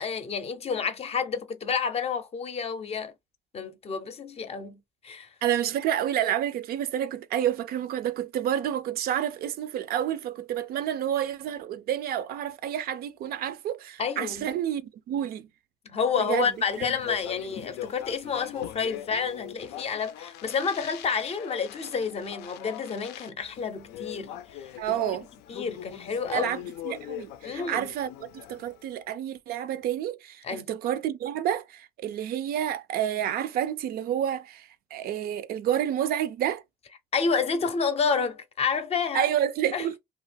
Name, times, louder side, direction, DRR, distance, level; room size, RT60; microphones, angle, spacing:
voice 1, 0.0-3.1 3.5-5.3 14.0-14.5 15.9-25.0 25.5-26.5 27.4-27.9 30.4-30.7 37.1-39.3 39.7-39.8, left 5 dB, 35° left, 0.5 m, -29 dB
voice 2, 5.4-15.5 16.2-16.8 24.8-25.3 26.3-28.1 28.5-36.6 39.1-40.0, right 10 dB, 65° right, 0.4 m, -29 dB
Speech, 16.5-28.9, left 11 dB, 85° left, 0.4 m, -41 dB
2.8 x 2.4 x 3.2 m
cardioid pair, 110°, 17 cm